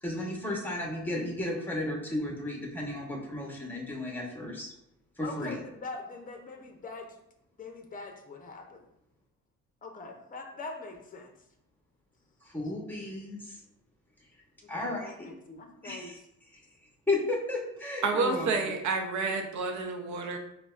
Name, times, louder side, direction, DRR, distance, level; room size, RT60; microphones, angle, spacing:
voice 1, 0.0-4.7 5.2-5.6 12.4-13.6 14.7-15.1 15.8-16.2 16.5-16.6 17.1-18.5, left 2 dB, 5° left, -1 dB, 1.0 m, -33 dB
voice 2, 5.2-7.1 7.6-8.8 9.8-11.3 14.7-16.1, left 3 dB, 25° left, 4 dB, 0.7 m, -43 dB
voice 3, 18.0-20.4, right 4 dB, 70° right, 4 dB, 0.7 m, -29 dB
4.9 x 2.2 x 2.4 m, 0.80 s
cardioid pair, 90°, 30 cm